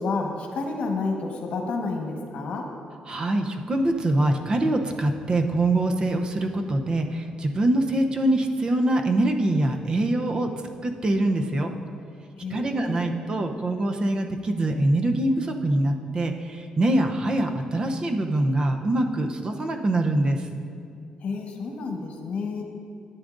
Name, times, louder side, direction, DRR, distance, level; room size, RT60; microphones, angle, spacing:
voice 1, 0.0-2.7 12.4-13.1 21.2-22.6, left 3 dB, 65° left, 2 dB, 1.2 m, -30 dB
voice 2, 3.1-10.5 10.8-11.7 12.5-20.4, right 1 dB, 35° right, 4 dB, 0.6 m, -24 dB
12.5 x 9.2 x 2.6 m, 2.3 s
cardioid pair, 130°, 2 cm